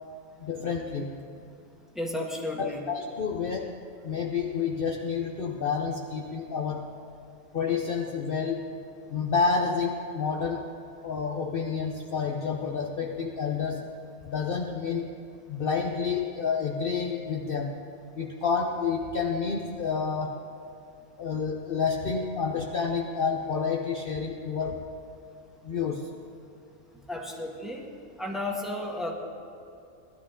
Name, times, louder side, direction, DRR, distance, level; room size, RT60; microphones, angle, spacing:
voice 1, 0.4-1.3 2.6-6.9 7.5-8.7 9.1-10.7 11.0-13.9 14.2-15.1 15.5-17.8 18.2-20.4 21.2-24.9 25.6-26.2, left 5 dB, 50° left, 1 dB, 0.9 m, -29 dB
voice 2, 1.9-2.8 27.1-27.9 28.2-29.1, left 1 dB, ahead, -2 dB, 1.5 m, -33 dB
18.0 x 12.5 x 3.8 m, 2.6 s
omnidirectional pair, 1.4 m